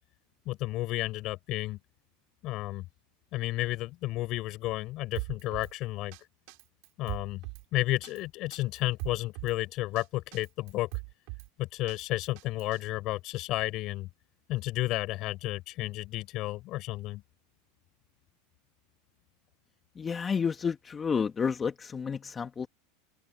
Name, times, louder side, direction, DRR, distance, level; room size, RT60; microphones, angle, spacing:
voice 1, 0.4-1.8 2.4-2.8 3.3-6.2 7.0-7.4 7.7-10.9 11.6-14.1 14.5-17.2, left 18 dB, 50° left, 6.7 m, -32 dB
Drum kit, 5.2-5.7 6.1-6.2 6.5-7.6 8.0-8.2 8.5-9.6 10.0-10.1 10.3-11.5 11.9-12.8, right 37 dB, 65° right, 6.0 m, -40 dB
voice 2, 20.0-22.7, left 6 dB, 25° left, 1.7 m, -30 dB
open air
hypercardioid pair, 105°, 0 cm